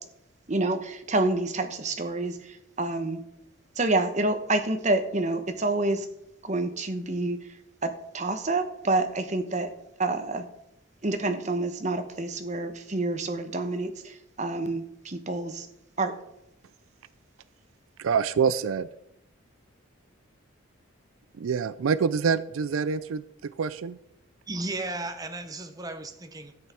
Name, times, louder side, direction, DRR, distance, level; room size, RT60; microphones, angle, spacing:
voice 1, 0.5-3.2 3.8-6.1 6.4-7.4 7.8-9.7 10.0-10.5 11.0-15.7 16.0-16.1, right 2 dB, 35° right, 7 dB, 1.0 m, -28 dB
voice 2, 18.0-18.9 21.3-24.0, right 6 dB, 85° right, 16 dB, 0.4 m, -26 dB
voice 3, 24.5-26.7, right 2 dB, 20° right, 7 dB, 0.8 m, -35 dB
12.5 x 8.2 x 4.4 m, 0.81 s
head